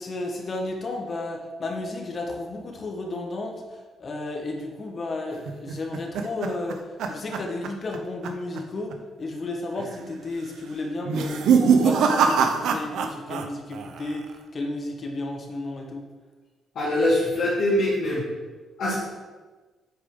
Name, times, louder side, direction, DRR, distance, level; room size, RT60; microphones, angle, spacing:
voice 1, 0.0-6.8 7.1-16.1, left 2 dB, 40° left, 2 dB, 1.3 m, -33 dB
sound 1, 5.5-8.0 8.2-8.6 8.9-9.0 9.8-10.2 11.0-13.5 13.7-14.3, right 6 dB, 80° right, 0.6 m, -23 dB
voice 2, 16.7-18.2 18.8-18.9, left 1 dB, 70° left, -8 dB, 2.2 m, -23 dB
8.2 x 4.8 x 3.8 m, 1.3 s
cardioid pair, 90°, 0 cm